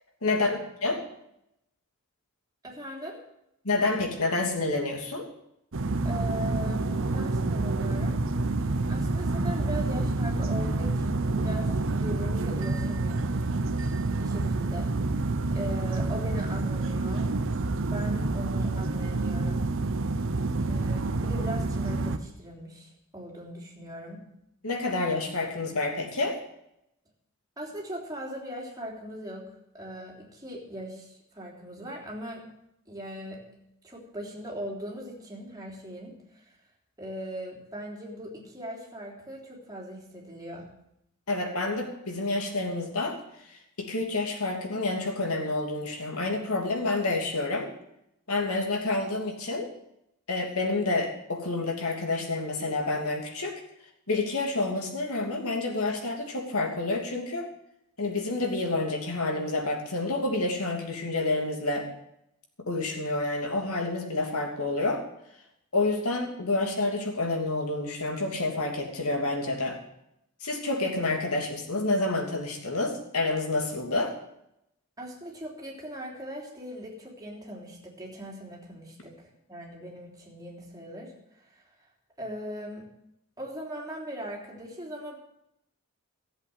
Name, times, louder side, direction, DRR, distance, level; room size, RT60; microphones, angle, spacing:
voice 1, 0.2-1.0 3.6-5.3 24.6-26.4 41.3-47.7 48.3-49.7 50.3-53.5 54.1-57.5 58.0-61.9 62.7-65.0 65.7-69.8 70.4-74.2, left 2 dB, 70° left, 2 dB, 3.0 m, -29 dB
voice 2, 2.6-3.2 6.0-8.2 8.7-13.4 14.2-14.9 15.5-17.3 17.8-19.7 20.6-24.2 27.6-29.5 29.7-32.5 32.9-33.4 33.8-36.4 37.0-40.7 75.0-81.9 82.2-82.9 83.4-85.2, equal, 15° right, -1 dB, 3.4 m, -39 dB
sound 1, 5.7-22.2, right 2 dB, 60° right, 0.9 m, -28 dB
14.5 x 8.0 x 8.0 m, 0.80 s
head